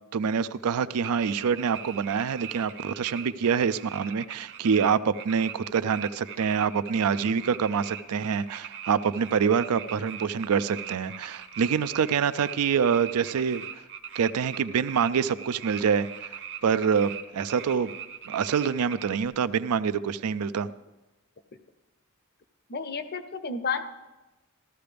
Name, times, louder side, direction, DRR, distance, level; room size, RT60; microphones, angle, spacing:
voice 1, 0.1-13.7 14.1-16.3 16.6-17.9 18.3-20.7, right 6 dB, 85° right, 0.4 m, -26 dB
sound 1, 1.0-4.9 5.1-19.3, right 8 dB, 55° right, 0.9 m, -41 dB
voice 2, 22.7-23.8, left 5 dB, 45° left, 0.7 m, -31 dB
14.5 x 13.0 x 3.4 m
head